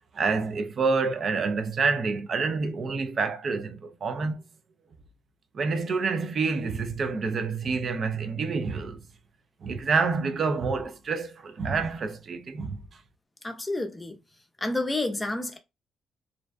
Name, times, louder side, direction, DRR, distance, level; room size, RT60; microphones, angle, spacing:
voice 1, 0.1-4.4 5.5-9.0 9.6-12.8, right 4 dB, 50° right, 0.4 m, -28 dB
voice 2, 13.4-14.2 14.6-15.6, left 2 dB, 15° left, 0.5 m, -29 dB
2.5 x 2.2 x 2.2 m
cardioid pair, 90°, 0 cm